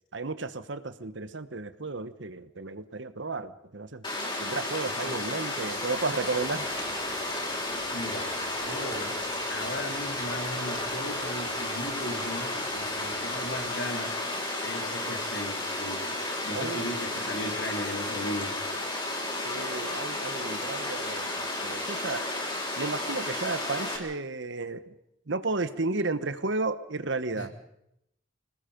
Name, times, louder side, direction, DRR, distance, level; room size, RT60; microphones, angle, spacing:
voice 1, 0.1-4.0 4.4-6.7 16.5-16.9 17.3-17.6 19.4-22.3 22.8-24.9 25.3-27.5, right 3 dB, 65° right, 12 dB, 1.1 m, -33 dB
Water, 4.0-24.0, left 2 dB, 25° left, 4.8 m, -33 dB
voice 2, 4.9-5.3 7.9-9.2 9.5-18.6 27.3-27.5, left 1 dB, 60° left, 3 dB, 3.6 m, -37 dB
sound 1, 5.5-13.8, right 2 dB, 20° right, 2.6 m, -45 dB
26.5 x 19.5 x 5.3 m, 0.81 s
head